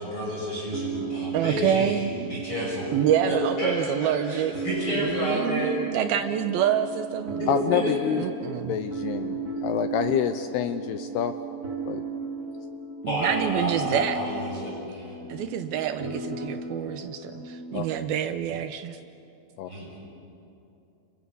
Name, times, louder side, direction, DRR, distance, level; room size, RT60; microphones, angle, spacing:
voice 1, 0.0-2.9 3.2-5.7 7.4-8.2 13.1-15.1 19.7-19.9, equal, 30° left, -5 dB, 7.4 m, -30 dB
sound 1, 0.7-18.2, right 4 dB, 30° right, 2.1 m, -35 dB
voice 2, 1.3-2.1 2.9-4.6 5.0-7.4 8.2-8.7 13.0-14.2 15.3-19.0, right 9 dB, 80° right, 8 dB, 2.2 m, -27 dB
voice 3, 7.5-8.2 8.7-11.3 11.9-12.0 17.7-17.9 19.6-19.7, left 9 dB, 75° left, 10 dB, 2.5 m, -27 dB
29.5 x 29.0 x 7.0 m, 2.7 s
omnidirectional pair, 5.2 m